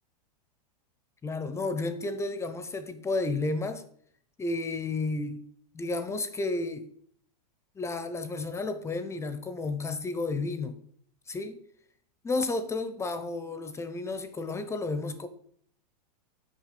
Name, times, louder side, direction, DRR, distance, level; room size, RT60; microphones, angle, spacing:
voice 1, 1.2-3.8 4.4-5.4 5.7-6.9 7.8-10.8 11.3-11.6 12.2-15.3, left 3 dB, 15° left, 11 dB, 0.6 m, -32 dB
6.3 x 5.5 x 6.6 m, 0.63 s
hypercardioid pair, 125°, 21 cm